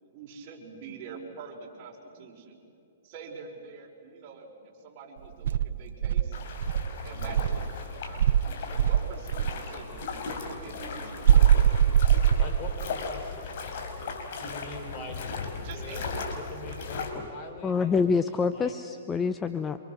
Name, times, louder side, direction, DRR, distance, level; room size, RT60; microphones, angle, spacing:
voice 1, 0.0-2.6 3.0-6.4 7.0-11.6 15.6-16.9, right 5 dB, 40° right, 0 dB, 5.8 m, -45 dB
Insect, 5.4-7.7 8.2-9.6 11.2-12.9, right 9 dB, 70° right, 0.7 m, -22 dB
sound 1, 6.3-17.1, left 4 dB, 55° left, 4.5 m, -37 dB
voice 2, 12.4-13.9 14.4-15.2 15.7-18.7, left 2 dB, 30° left, 4 dB, 4.3 m, -43 dB
voice 3, 17.6-19.8, left 5 dB, 15° left, 10 dB, 0.8 m, -26 dB
29.0 x 27.0 x 6.5 m, 2.8 s
hypercardioid pair, 145°, 0 cm